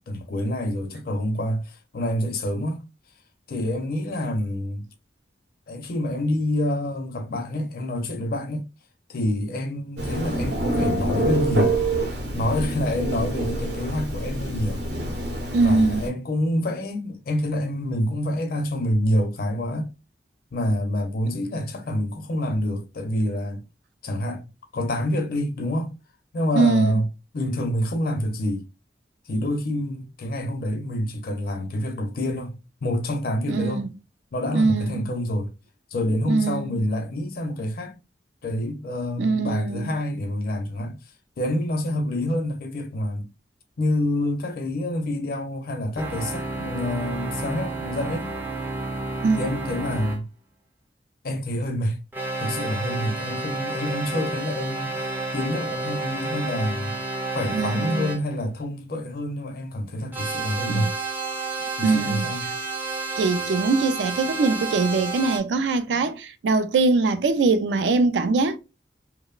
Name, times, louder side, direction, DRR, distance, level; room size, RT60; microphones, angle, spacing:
voice 1, 0.1-2.8 3.5-4.8 5.7-8.7 9.1-11.8 12.3-14.8 15.6-19.9 20.5-23.6 24.0-24.5 24.7-25.9 26.3-27.1 27.3-28.7 29.3-33.9 34.3-35.5 35.9-37.9 38.4-41.0 41.4-43.3 43.8-48.3 49.4-50.3 51.2-52.0 52.4-57.0 57.3-60.9 61.8-62.6, left 1 dB, 55° left, 0.5 m, -27 dB
Telephone, 10.0-16.1, right 1 dB, 65° right, 0.8 m, -26 dB
voice 2, 15.5-16.1 26.5-27.0 33.5-33.9 34.5-35.1 36.3-36.8 39.2-39.9 49.2-49.4 57.5-58.1 60.7-60.9 61.8-62.3 63.2-68.6, right 3 dB, 85° right, 0.3 m, -22 dB
sound 1, 46.0-50.2 52.1-58.2 60.1-65.4, right 3 dB, 10° right, 0.3 m, -30 dB
2.8 x 2.0 x 2.3 m
head